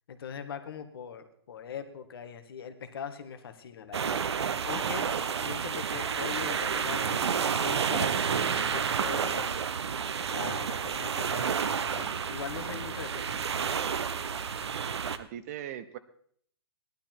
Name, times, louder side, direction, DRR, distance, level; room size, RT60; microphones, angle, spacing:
voice 1, 0.1-4.2 4.6-5.0 5.4-9.6 10.3-13.4, left 7 dB, 60° left, 8 dB, 1.7 m, -41 dB
sound 1, 3.9-15.2, right 6 dB, 85° right, 1.0 m, -30 dB
voice 2, 14.8-16.0, right 10 dB, 35° right, 13 dB, 0.8 m, -41 dB
16.0 x 11.5 x 4.5 m, 0.62 s
hypercardioid pair, 155°, 14 cm